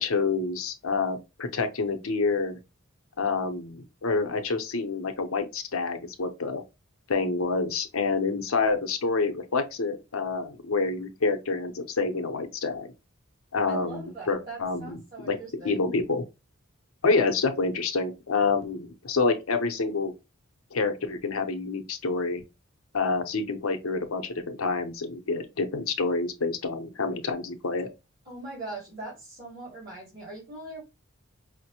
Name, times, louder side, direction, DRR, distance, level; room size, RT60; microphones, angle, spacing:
voice 1, 0.0-2.6 3.2-6.6 7.1-12.9 13.5-15.4 15.6-16.2 17.0-20.1 20.7-22.4 22.9-27.9, left 4 dB, 80° left, 0.7 m, -28 dB
voice 2, 13.7-15.8 28.2-30.8, right 2 dB, 45° right, 2.3 m, -41 dB
5.0 x 2.1 x 2.8 m
head